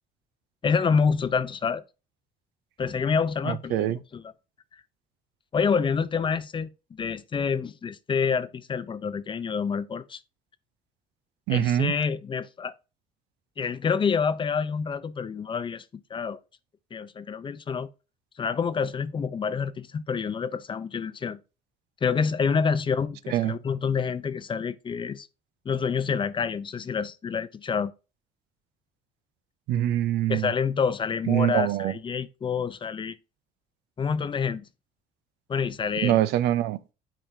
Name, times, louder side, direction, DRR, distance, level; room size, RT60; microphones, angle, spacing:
voice 1, 0.6-1.8 2.8-4.2 5.5-10.2 11.5-12.7 13.6-15.8 16.1-16.4 16.9-17.9 18.4-21.4 22.0-25.3 25.7-27.9 30.3-33.2 34.0-34.6 35.5-36.2, left 6 dB, 30° left, 0.5 m, -27 dB
voice 2, 3.5-4.0 11.5-11.9 23.3-23.5 29.7-30.5 31.3-31.9 36.0-36.8, right 13 dB, 85° right, 0.5 m, -24 dB
8.9 x 5.0 x 2.7 m
cardioid pair, 110°, 17 cm